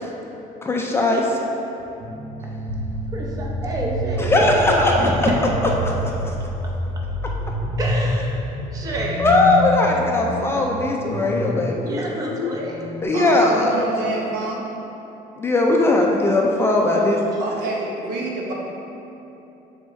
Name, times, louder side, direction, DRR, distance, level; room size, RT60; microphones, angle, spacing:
voice 1, 0.6-1.3 4.2-5.1 5.8-5.9 9.2-11.8 13.0-13.7 15.4-17.2, left 2 dB, 15° left, -1 dB, 0.4 m, -19 dB
sound 1, 2.0-13.2, right 3 dB, 45° right, 1.1 m, -36 dB
sound 2, 2.7-13.0, left 1 dB, 85° left, 0.7 m, -28 dB
voice 2, 3.1-5.4 7.8-8.4 8.7-9.2 11.9-12.8, right 1 dB, 25° right, -2 dB, 0.7 m, -26 dB
voice 3, 13.1-14.6 17.4-18.5, right 2 dB, 80° right, -2 dB, 1.0 m, -27 dB
7.1 x 3.5 x 4.1 m, 3.0 s
cardioid pair, 180°, 15 cm